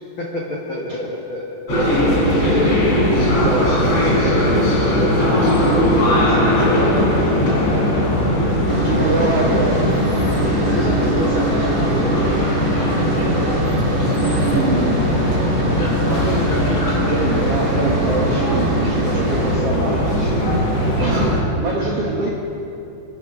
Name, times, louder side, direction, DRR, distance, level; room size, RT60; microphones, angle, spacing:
voice 1, 0.2-3.0 3.5-7.9 8.9-9.2 10.6-12.5 21.0-21.4, left 2 dB, 80° left, -2 dB, 1.1 m, -30 dB
sound 1, 1.7-21.4, equal, 40° left, 4.4 m, -18 dB
voice 2, 3.1-4.1 8.6-10.0 14.2-15.1 16.6-20.5 20.8-22.3, right 3 dB, 75° right, -3 dB, 1.4 m, -25 dB
sound 2, 8.7-19.6, right 3 dB, 35° right, 2.2 m, -27 dB
24.0 x 9.3 x 6.2 m, 2.7 s
omnidirectional pair, 4.9 m